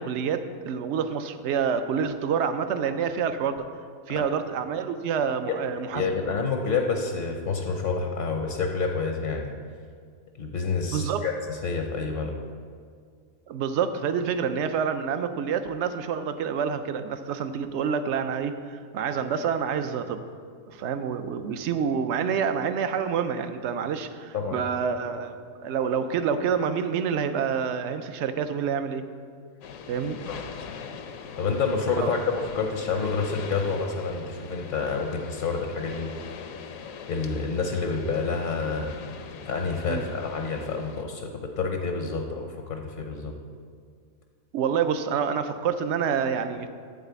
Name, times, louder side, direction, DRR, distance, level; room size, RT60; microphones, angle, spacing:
voice 1, 0.0-3.6 4.1-6.0 10.9-11.3 13.5-20.2 20.7-29.0 29.9-30.2 32.0-32.1 39.9-40.0 44.5-46.7, right 7 dB, 65° right, 9 dB, 0.7 m, -27 dB
voice 2, 5.8-9.5 10.4-12.3 24.3-24.6 30.3-30.4 31.4-36.3 37.1-38.9 39.5-41.3 41.6-43.3, left 4 dB, 45° left, 3 dB, 0.7 m, -28 dB
sound 1, 29.6-41.0, left 6 dB, 65° left, 1.0 m, -41 dB
12.0 x 4.0 x 8.1 m, 2.1 s
omnidirectional pair, 1.6 m